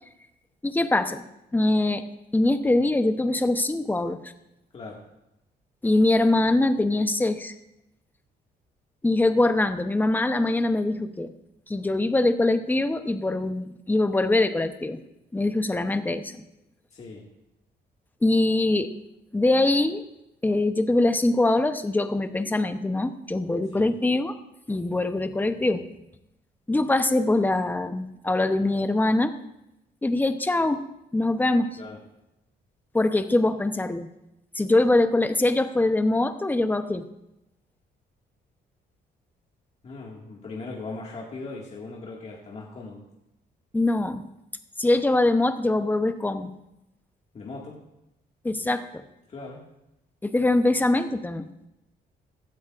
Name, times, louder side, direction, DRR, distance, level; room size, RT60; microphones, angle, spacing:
voice 1, 0.6-1.2 1.5-2.0 2.3-4.2 5.8-7.5 9.0-11.3 11.7-15.0 15.3-16.4 18.2-18.9 19.3-20.0 20.4-24.3 24.7-25.9 26.7-29.3 30.0-30.8 31.1-31.8 32.9-34.1 34.5-37.0 43.7-44.2 44.8-46.5 48.4-49.0 50.2-51.5, left 2 dB, 10° left, 9 dB, 0.7 m, -23 dB
voice 2, 16.9-17.3 23.7-23.9 31.8-32.0 39.8-43.0 47.3-47.8 49.3-49.6, left 3 dB, 40° left, -2 dB, 1.9 m, -39 dB
16.0 x 13.0 x 2.5 m, 0.88 s
cardioid pair, 120°, 18 cm